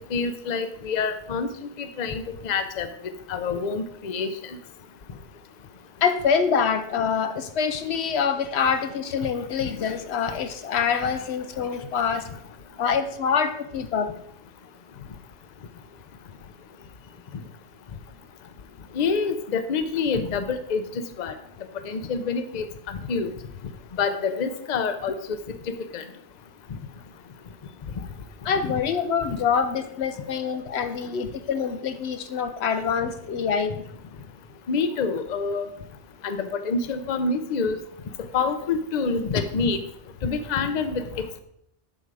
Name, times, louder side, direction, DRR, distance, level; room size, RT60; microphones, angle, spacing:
voice 1, 0.1-1.5 1.8-2.9 3.3-4.3 18.9-20.8 21.2-21.3 21.9-22.7 23.1-23.3 24.0-25.2 25.7-26.0 28.6-28.7 34.7-35.7 36.2-37.8 38.3-39.8 40.2-41.4, left 5 dB, 45° left, 9 dB, 0.7 m, -26 dB
voice 2, 6.0-12.3 12.8-14.1 28.4-33.8, left 6 dB, 80° left, 8 dB, 1.0 m, -25 dB
7.8 x 5.4 x 4.8 m, 0.73 s
omnidirectional pair, 1.1 m